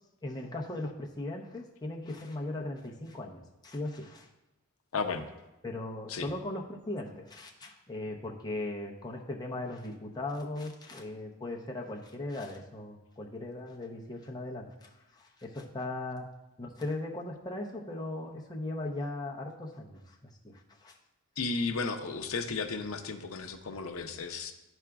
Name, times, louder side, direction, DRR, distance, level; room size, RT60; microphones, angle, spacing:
voice 1, 0.2-4.3 5.6-16.3 16.6-20.2 20.4-20.9, left 2 dB, 20° left, -1 dB, 0.7 m, -38 dB
voice 2, 4.9-5.3 6.1-6.3 21.4-24.5, left 4 dB, 70° left, 6 dB, 0.7 m, -34 dB
12.0 x 4.8 x 2.3 m, 0.98 s
head